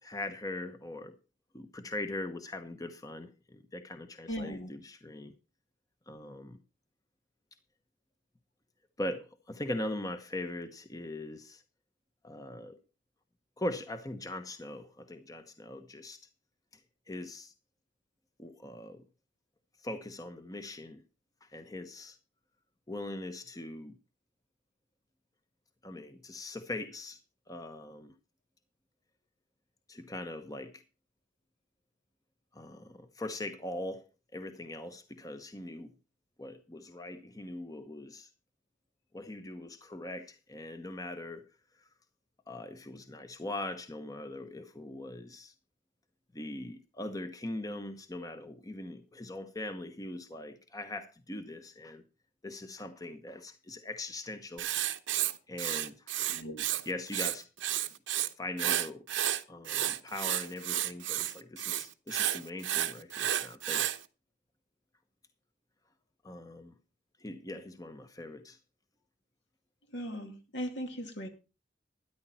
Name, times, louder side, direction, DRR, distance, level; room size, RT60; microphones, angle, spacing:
voice 1, 0.0-1.1 1.5-5.3 6.1-6.6 9.0-11.6 12.2-12.8 13.6-16.2 17.1-17.5 18.4-19.0 19.8-21.0 21.4-22.2 22.9-23.9 25.8-27.2 27.5-28.1 29.9-30.8 32.5-34.1 34.3-35.9 36.4-38.3 39.1-41.4 41.8-41.9 42.5-45.5 46.3-52.0 52.4-54.7 55.5-56.2 56.8-57.5 57.7-57.9 58.4-59.0 59.5-63.9 66.2-66.7 67.2-68.6, left 1 dB, 20° left, 1.0 m, -41 dB
voice 2, 4.3-4.7 56.3-56.6 69.9-71.3, equal, 70° left, 2.5 m, -38 dB
Writing, 54.6-56.8 57.1-58.3 58.6-64.0, right 12 dB, 75° right, 1.0 m, -31 dB
13.0 x 10.5 x 4.3 m
head